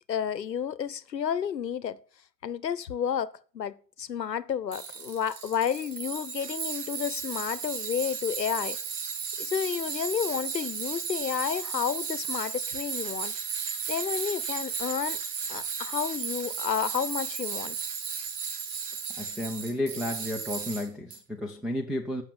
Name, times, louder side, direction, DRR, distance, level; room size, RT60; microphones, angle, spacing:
voice 1, 0.1-2.0 2.4-8.8 9.4-13.3 13.9-15.2 15.5-17.8, left 8 dB, 90° left, 0.9 m, -31 dB
Tools, 4.7-21.2, right 6 dB, 50° right, 2.3 m, -34 dB
voice 2, 19.2-22.2, left 1 dB, ahead, 0.7 m, -32 dB
14.0 x 6.3 x 6.9 m
hypercardioid pair, 120°, 49 cm